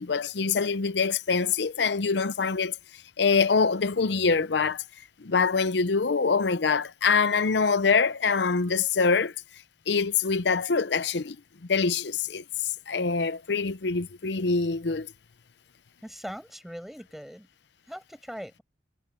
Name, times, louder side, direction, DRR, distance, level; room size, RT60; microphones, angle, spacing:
voice 1, 0.0-2.8 3.2-4.8 5.2-9.3 9.9-11.4 11.7-15.1, left 5 dB, 70° left, 0.7 m, -24 dB
voice 2, 16.0-17.5 17.9-18.6, equal, ahead, 5.7 m, -40 dB
head